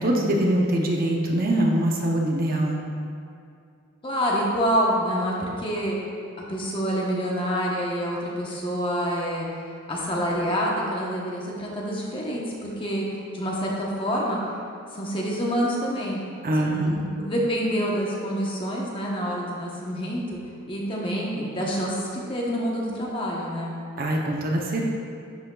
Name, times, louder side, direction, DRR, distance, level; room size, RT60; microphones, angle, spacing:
voice 1, 0.0-2.8 16.4-17.1 24.0-24.8, right 1 dB, 45° right, 0 dB, 0.7 m, -23 dB
voice 2, 4.0-6.0 6.4-9.5 9.9-13.0 13.3-14.4 14.9-16.2 16.7-16.9 17.2-20.4 20.7-23.7, equal, 25° left, -3 dB, 1.0 m, -27 dB
11.0 x 6.2 x 2.3 m, 2.5 s
head